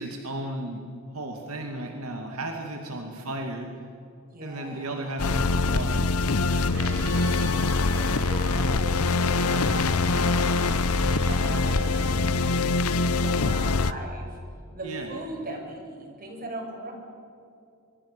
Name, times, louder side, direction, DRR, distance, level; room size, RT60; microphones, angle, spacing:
voice 1, 0.0-3.7 4.4-6.0 14.8-15.1, right 1 dB, 80° right, 3 dB, 2.5 m, -34 dB
voice 2, 2.5-3.1 4.3-5.2 6.4-12.8 13.2-14.4 14.7-16.9, right 1 dB, 45° right, 2 dB, 5.8 m, -40 dB
sound 1, 5.2-13.9, left 3 dB, 85° left, 0.8 m, -24 dB
Crowd, 6.3-12.8, right 4 dB, 65° right, 3.6 m, -41 dB
25.5 x 24.0 x 6.9 m, 2.5 s
head